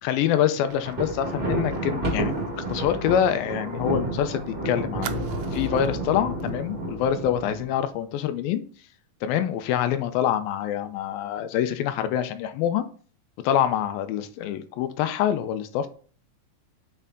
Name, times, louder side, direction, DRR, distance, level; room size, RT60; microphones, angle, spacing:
voice 1, 0.0-2.3 2.7-5.2 5.5-8.6 9.2-12.9 13.4-15.9, left 10 dB, 80° left, 2.4 m, -25 dB
Thunder, 0.7-7.9, right 1 dB, 30° right, 1.0 m, -30 dB
Fire, 0.7-4.1 4.4-4.5 5.0-6.0 6.4-6.6 6.9-7.1, right 11 dB, 85° right, 1.7 m, -43 dB
6.8 x 5.1 x 3.6 m
omnidirectional pair, 4.3 m